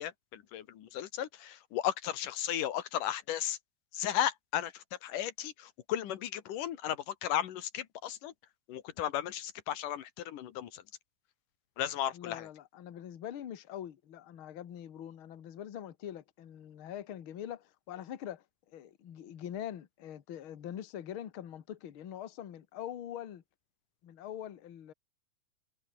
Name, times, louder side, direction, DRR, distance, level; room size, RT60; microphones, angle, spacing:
voice 1, 0.0-3.6 3.9-8.3 8.7-10.8 11.8-12.5, left 11 dB, 75° left, 3.1 m, -35 dB
voice 2, 12.1-23.4 24.0-24.9, left 10 dB, 45° left, 1.9 m, -43 dB
omnidirectional pair, 3.9 m